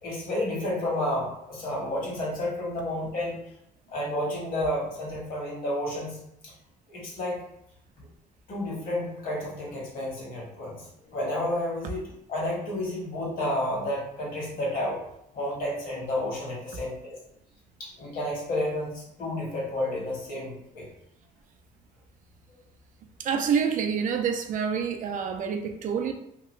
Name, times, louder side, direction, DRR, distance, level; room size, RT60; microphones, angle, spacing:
voice 1, 0.0-3.4 3.9-6.5 6.9-7.4 8.5-15.0 15.3-17.2 17.8-20.9, left 1 dB, 60° left, -4 dB, 1.4 m, -31 dB
voice 2, 23.2-26.1, right 7 dB, 50° right, 5 dB, 0.4 m, -27 dB
2.9 x 2.4 x 3.0 m, 0.77 s
cardioid pair, 110°, 17 cm